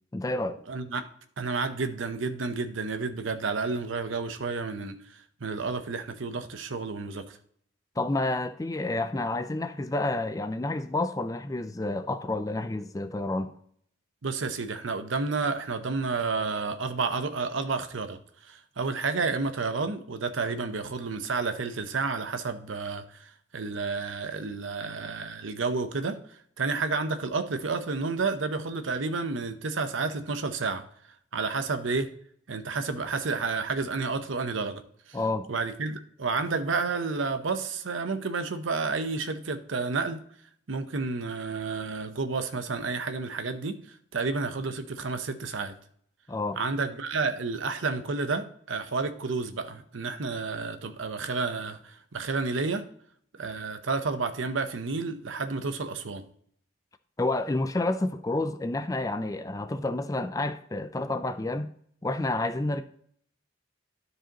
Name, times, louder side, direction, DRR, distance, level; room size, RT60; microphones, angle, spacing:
voice 1, 0.1-0.6 8.0-13.5 35.1-35.5 46.3-46.6 57.2-61.7 62.0-62.8, left 2 dB, 15° left, 0.4 m, -29 dB
voice 2, 0.7-1.0 1.4-5.0 5.4-7.4 14.2-18.2 18.5-30.8 31.3-32.1 32.5-34.8 35.1-35.2 35.5-40.2 40.7-45.7 46.6-52.8 53.4-56.2, right 4 dB, 80° right, 0.8 m, -30 dB
12.5 x 4.9 x 2.9 m
head